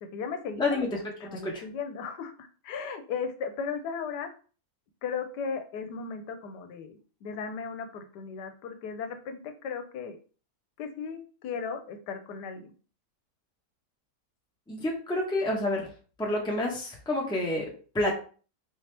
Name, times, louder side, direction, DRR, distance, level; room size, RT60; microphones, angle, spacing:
voice 1, 0.0-0.9 1.2-4.3 5.0-10.2 10.8-12.7, left 5 dB, 90° left, 7 dB, 1.2 m, -36 dB
voice 2, 0.6-1.0 1.3-1.6 14.7-15.9 16.2-18.1, left 2 dB, 5° left, -2 dB, 0.7 m, -29 dB
4.0 x 2.8 x 3.3 m, 0.38 s
omnidirectional pair, 1.8 m